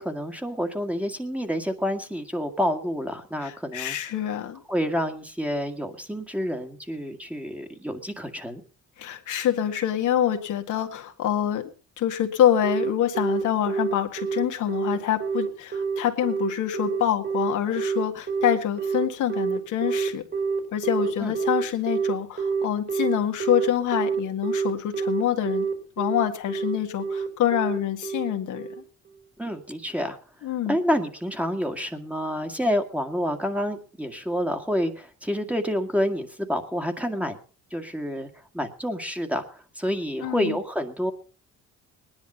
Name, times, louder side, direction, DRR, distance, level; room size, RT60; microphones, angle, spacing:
voice 1, 0.0-4.0 4.7-8.6 21.2-21.3 29.4-30.2 30.7-37.4 37.7-38.3 38.5-41.1, equal, 5° right, 6 dB, 1.9 m, -28 dB
voice 2, 3.4-4.6 9.0-11.7 12.0-20.2 20.7-25.7 26.0-28.7 30.4-30.8 40.2-40.6, left 10 dB, 80° left, 4 dB, 1.8 m, -26 dB
Telephone, 12.6-28.8, right 5 dB, 40° right, 4.0 m, -27 dB
19.0 x 10.5 x 5.6 m, 0.40 s
cardioid pair, 90°, 30 cm